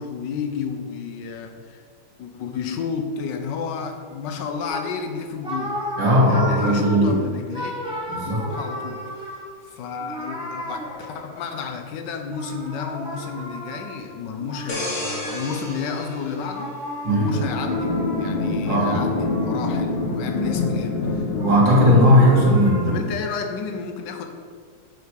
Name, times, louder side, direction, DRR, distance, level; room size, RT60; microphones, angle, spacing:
voice 1, 0.0-1.8 2.2-5.8 6.2-7.7 8.0-16.7 17.0-17.9 18.2-21.3 22.8-24.3, left 6 dB, 65° left, 6 dB, 1.4 m, -31 dB
sound 1, 4.7-11.6 12.3-18.6 19.0-20.2 20.6-23.0, equal, 5° right, 0.7 m, -35 dB
voice 2, 6.0-7.2 8.1-8.5 17.0-17.3 18.7-19.1 21.4-23.0, equal, 60° right, -4 dB, 2.5 m, -17 dB
sound 2, 14.7-17.4 17.8-18.0, left 1 dB, 45° left, 2.0 m, -33 dB
sound 3, 17.3-22.7, left 3 dB, 90° left, 2.0 m, -25 dB
8.2 x 5.2 x 4.8 m, 2.1 s
omnidirectional pair, 2.3 m